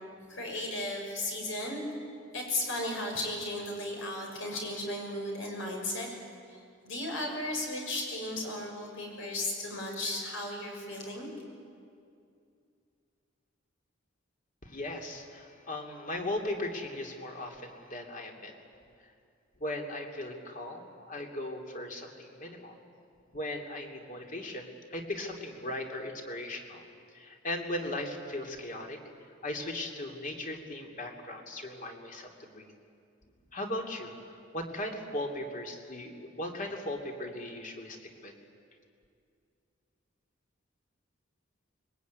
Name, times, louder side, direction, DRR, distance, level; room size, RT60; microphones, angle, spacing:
voice 1, 0.3-1.8 2.3-6.1 6.5-6.6 6.8-11.3, left 1 dB, 75° left, 1 dB, 6.4 m, -35 dB
voice 2, 14.6-18.5 19.6-22.8 23.3-26.8 27.1-29.0 29.4-32.7 33.5-38.3, left 1 dB, 40° left, 3 dB, 2.9 m, -38 dB
24.5 x 22.0 x 9.5 m, 2.4 s
head